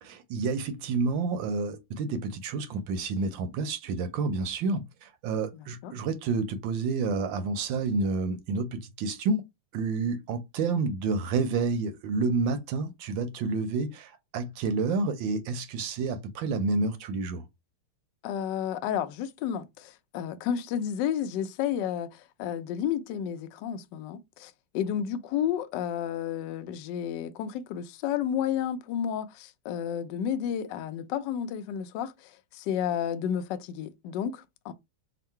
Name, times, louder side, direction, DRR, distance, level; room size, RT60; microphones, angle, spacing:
voice 1, 0.0-9.4 9.7-17.4, right 4 dB, 70° right, 1.2 m, -29 dB
voice 2, 5.5-5.9 18.2-34.7, left 9 dB, 75° left, 1.0 m, -31 dB
3.7 x 2.2 x 4.4 m
omnidirectional pair, 2.4 m